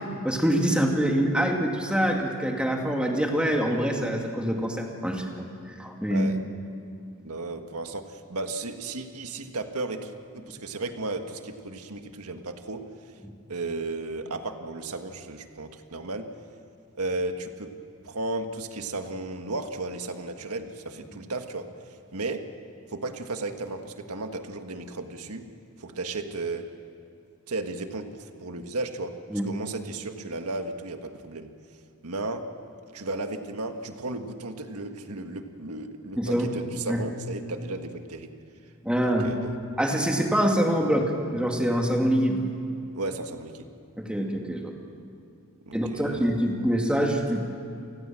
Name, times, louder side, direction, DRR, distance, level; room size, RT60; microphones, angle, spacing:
voice 1, 0.0-5.5 5.8-6.3 21.1-21.2 29.3-29.5 36.2-36.5 36.9-37.0 38.8-39.4 39.8-42.4 44.0-44.7 45.7-47.5, equal, 5° right, 1 dB, 2.5 m, -25 dB
voice 2, 7.2-12.8 13.5-16.3 17.0-17.7 18.0-21.7 22.1-22.4 22.9-25.4 25.8-26.6 27.5-29.1 29.4-31.5 32.0-32.4 32.9-38.3 39.2-39.6 43.0-43.7 45.7-46.2, right 2 dB, 80° right, 6 dB, 1.7 m, -34 dB
29.0 x 20.0 x 7.7 m, 2.4 s
head